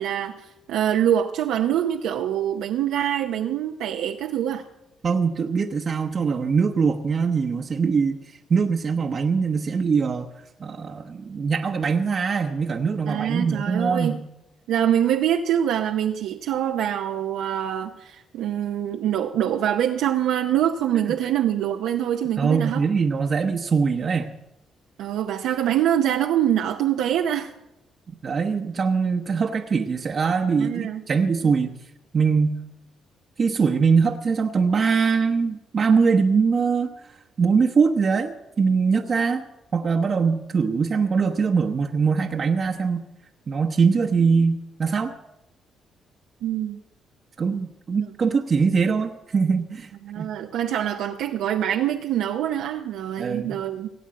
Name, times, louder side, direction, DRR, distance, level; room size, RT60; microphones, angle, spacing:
voice 1, 0.0-4.6 13.1-14.2 14.7-22.8 25.0-27.5 30.6-31.0 31.4-31.5 46.4-46.8 48.0-48.1 50.0-53.9, right 10 dB, 90° right, 3 dB, 0.7 m, -24 dB
voice 2, 5.0-8.2 8.5-10.3 10.6-14.2 20.9-21.0 22.4-24.3 28.2-31.7 32.1-32.6 33.4-36.9 37.4-39.4 39.7-43.0 43.5-45.1 47.4-49.9 50.2-50.3 53.2-53.6, right 5 dB, 45° right, 2 dB, 0.9 m, -22 dB
17.5 x 8.1 x 7.5 m, 0.89 s
cardioid pair, 90°, 0 cm